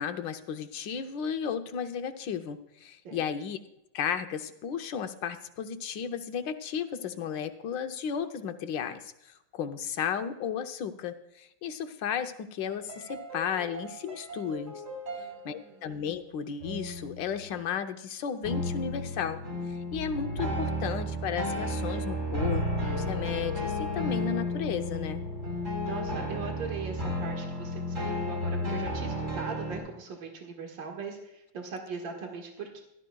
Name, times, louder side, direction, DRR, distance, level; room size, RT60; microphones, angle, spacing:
voice 1, 0.0-3.6 3.9-14.7 15.4-19.4 19.7-25.2, left 7 dB, 75° left, 8 dB, 1.5 m, -34 dB
sound 1, 12.8-15.7 16.6-17.2 18.4-29.8, left 1 dB, 40° right, 3.6 m, -33 dB
voice 2, 15.2-15.9 25.8-32.8, right 5 dB, 75° right, 1 dB, 2.4 m, -40 dB
16.0 x 12.5 x 2.3 m, 0.86 s
omnidirectional pair, 2.1 m